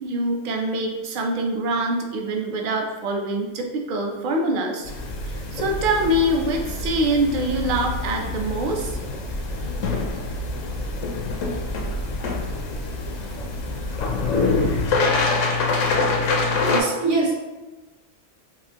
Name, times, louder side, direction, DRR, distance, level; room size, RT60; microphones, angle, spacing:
voice 1, 0.0-4.9 5.2-9.0, right 1 dB, 55° right, 1 dB, 0.6 m, -24 dB
sound 1, 4.8-14.9, left 2 dB, 55° left, 0.5 m, -29 dB
sound 2, 5.8-16.8, left 4 dB, 85° left, 1.0 m, -27 dB
voice 2, 16.6-17.3, right 3 dB, 75° right, -3 dB, 1.3 m, -24 dB
4.1 x 2.8 x 2.8 m, 1.1 s
omnidirectional pair, 1.3 m